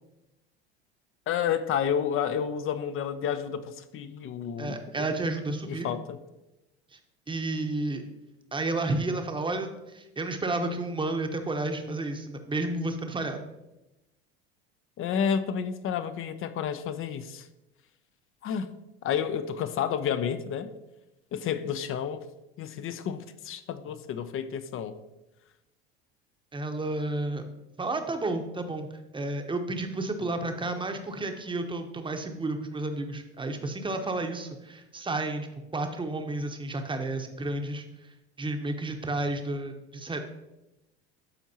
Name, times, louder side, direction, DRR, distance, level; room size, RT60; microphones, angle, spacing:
voice 1, 1.3-5.1 5.6-6.2 15.0-17.5 18.4-18.7 19.0-20.7 21.3-22.2 22.6-25.0, left 8 dB, 40° left, 12 dB, 0.6 m, -30 dB
voice 2, 4.6-5.9 6.9-7.0 7.3-8.0 8.5-13.4 26.5-27.4 27.8-28.9 29.1-35.5 35.7-37.8 38.4-40.2, right 2 dB, 15° right, 5 dB, 0.9 m, -31 dB
12.0 x 4.5 x 2.8 m, 0.97 s
hypercardioid pair, 75°, 32 cm